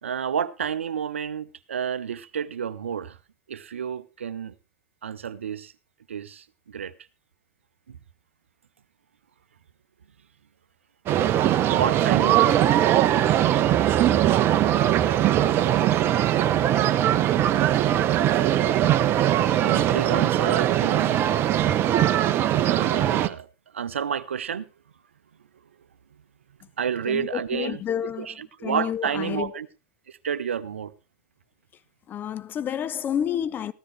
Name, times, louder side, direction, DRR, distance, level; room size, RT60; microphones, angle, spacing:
voice 1, 0.0-3.2 3.5-4.5 5.0-5.7 6.1-6.9 7.9-8.0 11.7-12.9 19.6-21.3 22.6-23.5 23.7-24.7 26.8-27.8 28.2-29.7 30.1-30.9, right 8 dB, 75° right, 0.6 m, -30 dB
sound 1, 11.1-23.3, right 12 dB, 35° right, 0.7 m, -21 dB
voice 2, 27.1-28.4 28.6-29.5 32.1-33.7, left 9 dB, 30° left, 0.6 m, -29 dB
14.5 x 13.0 x 3.3 m
figure-of-eight pair, 85°, 7 cm